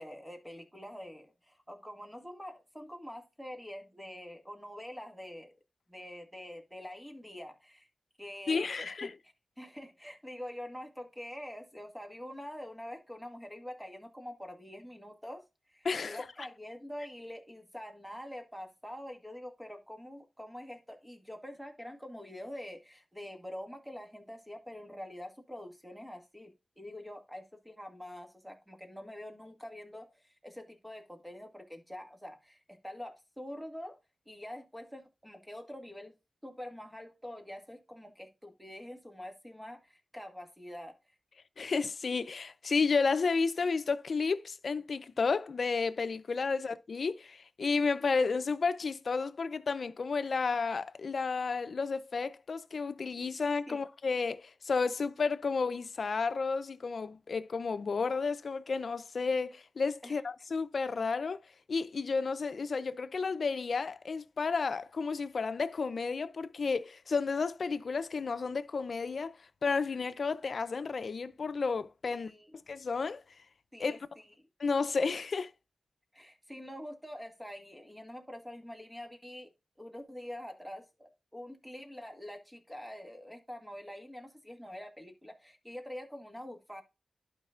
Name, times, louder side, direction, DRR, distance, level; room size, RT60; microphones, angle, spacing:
voice 1, 0.0-5.5 5.9-7.9 8.2-9.1 9.6-34.0 34.3-36.1 36.4-41.0 53.7-53.8 60.0-60.2 72.1-72.6 73.7-74.3 76.1-79.5 79.8-86.8, left 1 dB, 5° right, 2.0 m, -45 dB
voice 2, 8.5-9.1 15.8-16.5 41.6-61.4 61.7-69.3 69.6-72.3 72.7-73.2 73.8-74.0 74.6-75.5, left 4 dB, 70° left, 0.6 m, -32 dB
12.0 x 5.2 x 2.4 m
cardioid pair, 65°, 0 cm